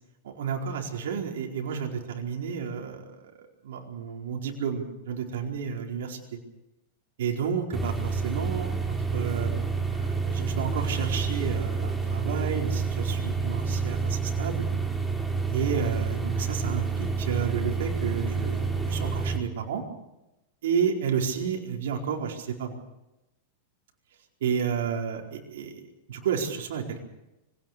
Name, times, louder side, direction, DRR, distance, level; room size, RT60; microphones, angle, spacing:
voice 1, 0.2-3.1 3.6-6.4 7.2-9.5 9.9-14.7 15.5-19.8 20.6-22.8 24.4-25.7 26.1-27.0, right 7 dB, 70° right, 1 dB, 4.5 m, -31 dB
sound 1, 7.7-19.4, right 4 dB, ahead, 5.8 m, -28 dB
24.5 x 18.0 x 6.8 m, 0.93 s
hypercardioid pair, 105°, 0 cm